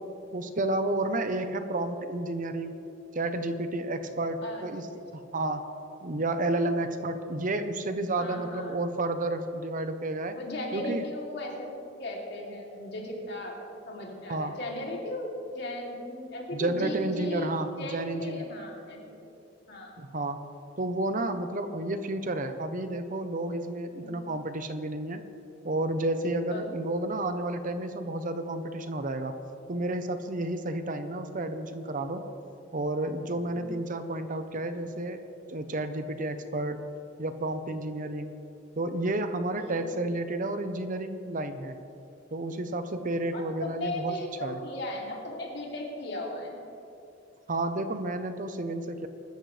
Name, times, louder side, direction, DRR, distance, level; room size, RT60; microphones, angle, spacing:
voice 1, 0.3-2.8 3.1-4.9 5.1-5.7 6.0-10.4 10.7-11.0 14.3-14.6 16.5-18.5 20.0-20.5 20.8-25.2 25.6-29.4 29.7-32.2 32.7-35.2 35.5-36.8 37.2-38.3 38.8-41.8 42.3-44.1 44.4-44.6 47.5-49.1, right 2 dB, 45° right, 9 dB, 0.9 m, -31 dB
voice 2, 4.4-5.1 6.7-6.8 8.2-8.7 10.3-11.7 12.0-13.6 13.8-17.5 17.8-19.2 19.7-19.9 23.9-24.3 26.5-26.6 33.5-33.7 39.5-39.8 43.3-46.6, left 1 dB, 65° left, -2 dB, 3.1 m, -37 dB
24.0 x 13.0 x 3.4 m, 2.8 s
head